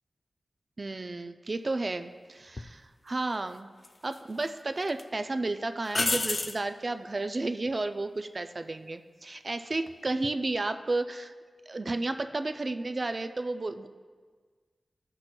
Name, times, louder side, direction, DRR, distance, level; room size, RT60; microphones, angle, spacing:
voice 1, 0.8-3.7 4.0-11.3 11.7-13.9, right 2 dB, 45° right, 8 dB, 0.3 m, -32 dB
sound 1, 2.6-2.7 3.8-4.5 4.9-5.0 5.9-6.6 9.7-10.1, left 2 dB, 40° left, 0.3 m, -30 dB
14.5 x 6.0 x 2.2 m, 1.5 s
wide cardioid pair, 80°, 0 cm